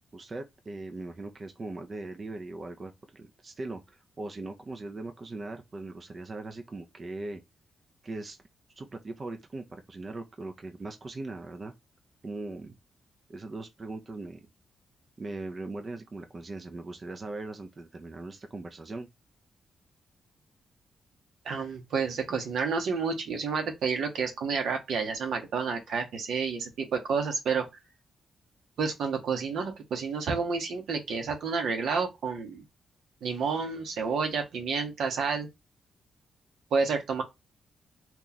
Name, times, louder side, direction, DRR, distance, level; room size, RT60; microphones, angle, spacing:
voice 1, 0.1-7.4 8.0-8.4 8.8-11.7 12.2-12.8 13.3-14.4 15.2-19.1, right 2 dB, 40° right, 0.5 m, -40 dB
voice 2, 21.4-27.6 28.8-32.6 33.2-35.5 36.7-37.2, right 5 dB, 80° right, 0.9 m, -30 dB
2.9 x 2.3 x 3.9 m
cardioid pair, 65°, 0 cm